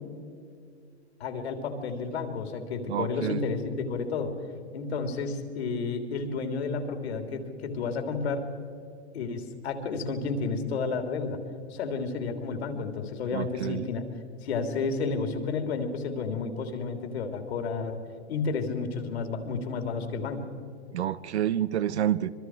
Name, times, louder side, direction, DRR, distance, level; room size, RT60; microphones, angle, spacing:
voice 1, 1.2-4.3 4.7-8.5 9.1-11.4 11.7-14.0 14.4-18.0 18.3-20.5, left 4 dB, 70° left, 6 dB, 3.4 m, -31 dB
voice 2, 2.9-3.4 13.3-13.9 20.9-22.3, right 11 dB, 80° right, 16 dB, 1.0 m, -28 dB
26.5 x 22.0 x 4.8 m, 2.3 s
hypercardioid pair, 125°, 33 cm